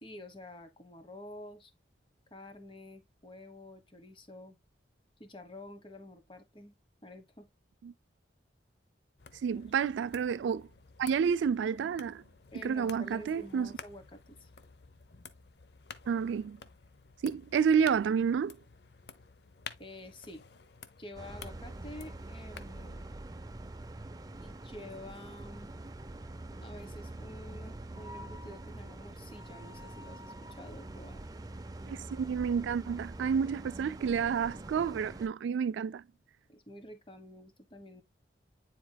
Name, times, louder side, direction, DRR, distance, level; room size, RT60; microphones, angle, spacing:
voice 1, 0.0-1.7 2.3-4.6 5.2-6.8 7.0-7.5 9.5-9.7 12.5-14.5 19.8-20.4 21.0-23.1 24.4-25.7 26.6-31.2 36.5-38.0, left 1 dB, 30° left, 1.2 m, -49 dB
sound 1, 9.2-23.0, left 6 dB, 65° left, 0.7 m, -52 dB
voice 2, 9.4-10.7 11.0-12.2 12.6-13.7 16.1-16.6 17.2-18.6 31.9-36.0, right 7 dB, 85° right, 0.3 m, -30 dB
sound 2, 21.1-35.3, right 2 dB, 20° right, 0.5 m, -45 dB
9.5 x 4.3 x 2.3 m
head